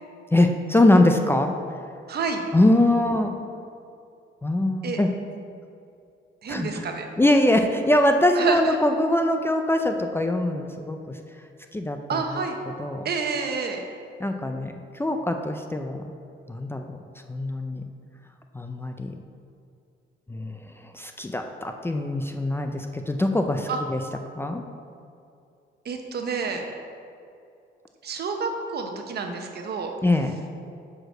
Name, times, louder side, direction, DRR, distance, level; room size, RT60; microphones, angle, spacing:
voice 1, 0.3-1.5 2.5-3.3 4.4-5.1 6.5-6.8 7.2-11.2 11.7-12.2 12.8-13.0 14.2-16.0 16.5-17.0 17.3-17.8 18.5-19.1 20.3-24.0 24.3-24.6 30.0-30.4, left 1 dB, 10° left, 5 dB, 0.5 m, -23 dB
voice 2, 2.1-2.5 4.8-5.0 6.4-7.1 8.4-8.7 12.1-12.6 13.0-13.8 23.7-23.8 25.8-26.6 28.0-29.9, right 5 dB, 55° right, 4 dB, 1.0 m, -29 dB
6.2 x 4.9 x 6.4 m, 2.5 s
cardioid pair, 90°, 20 cm